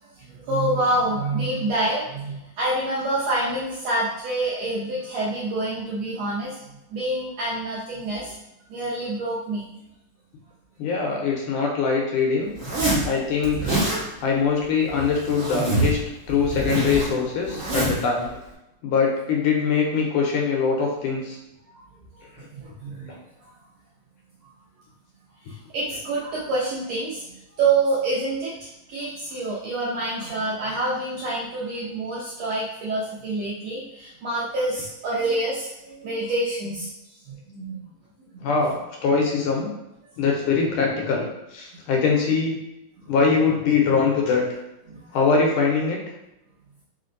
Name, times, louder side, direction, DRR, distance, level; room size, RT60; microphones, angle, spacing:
voice 1, 0.0-6.5 6.9-8.3 8.7-9.6 22.5-23.2 25.5-36.9 37.2-37.8 38.3-38.4 44.9-45.1, right 2 dB, 75° right, -7 dB, 1.5 m, -27 dB
voice 2, 10.8-12.5 13.0-13.8 14.2-16.0 16.3-18.3 18.8-21.4 22.4-22.5 23.1-23.2 38.4-39.7 40.2-42.6 43.1-44.4 45.1-46.0, left 5 dB, 75° left, -1 dB, 2.1 m, -22 dB
Zipper (clothing), 12.6-13.1 13.4-14.0 14.9-16.0 16.3-18.0, right 2 dB, 60° right, 0.8 m, -25 dB
5.1 x 2.2 x 3.8 m, 0.90 s
omnidirectional pair, 3.7 m